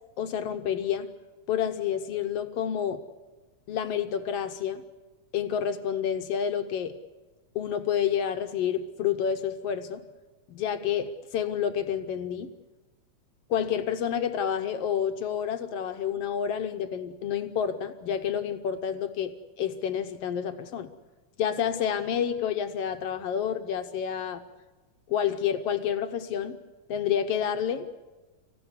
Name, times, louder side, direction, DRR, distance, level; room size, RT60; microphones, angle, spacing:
voice 1, 0.2-1.1 1.5-3.0 3.7-4.8 5.3-7.0 7.5-10.0 10.5-12.5 13.5-20.9 21.4-24.4 25.1-26.6 26.9-27.9, left 8 dB, 70° left, 8 dB, 1.5 m, -29 dB
26.0 x 16.0 x 9.8 m, 1.2 s
omnidirectional pair, 3.7 m